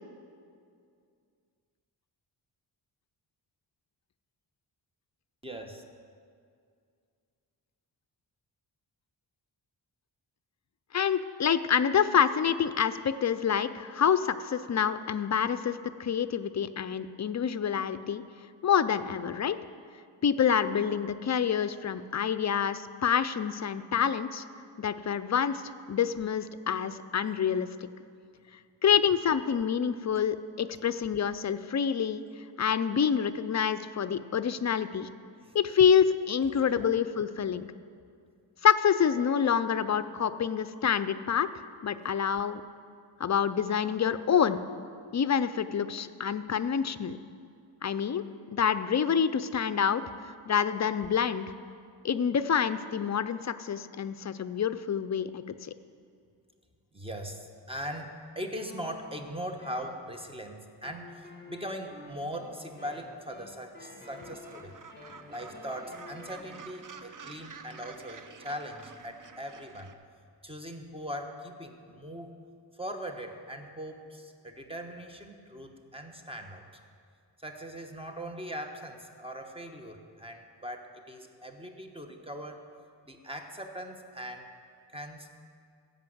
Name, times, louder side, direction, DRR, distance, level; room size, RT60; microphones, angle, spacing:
voice 1, 5.4-5.8 35.4-35.6 36.8-36.9 56.9-64.8 65.3-69.9 70.4-72.4 72.7-76.7 77.4-82.6 83.0-84.5 84.9-85.3, equal, 15° right, 4 dB, 1.0 m, -40 dB
voice 2, 10.9-18.2 18.6-19.6 20.2-24.4 24.8-25.6 25.9-27.7 28.8-32.2 32.6-35.1 35.5-37.7 38.6-41.5 41.8-42.6 43.2-44.6 45.1-47.2 47.8-48.2 48.5-50.0 50.5-51.5 52.0-55.7, left 7 dB, 40° left, 13 dB, 0.4 m, -27 dB
sound 1, 58.6-60.4 60.8-66.6, left 2 dB, 25° left, 1.9 m, -50 dB
Gull seagull, 64.1-69.9, right 5 dB, 45° right, 0.6 m, -49 dB
15.5 x 5.3 x 7.8 m, 2.3 s
wide cardioid pair, 125°, 44 cm